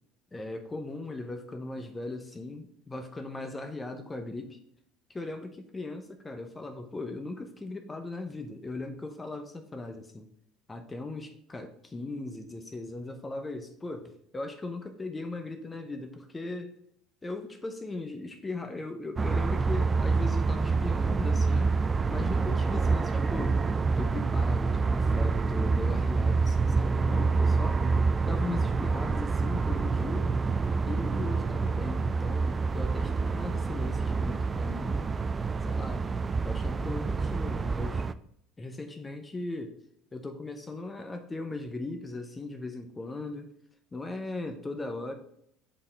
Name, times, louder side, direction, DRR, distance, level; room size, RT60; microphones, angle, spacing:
voice 1, 0.3-4.6 5.1-10.3 10.7-16.8 17.2-21.8 22.1-23.6 24.0-27.8 28.2-30.3 30.8-35.1 35.7-36.1 36.4-38.1 38.6-39.8 40.1-43.5 43.9-45.2, left 2 dB, 20° left, 6 dB, 0.8 m, -38 dB
sound 1, 19.2-38.1, right 4 dB, 25° right, 0.3 m, -27 dB
5.4 x 4.2 x 4.4 m, 0.71 s
hypercardioid pair, 75°, 0 cm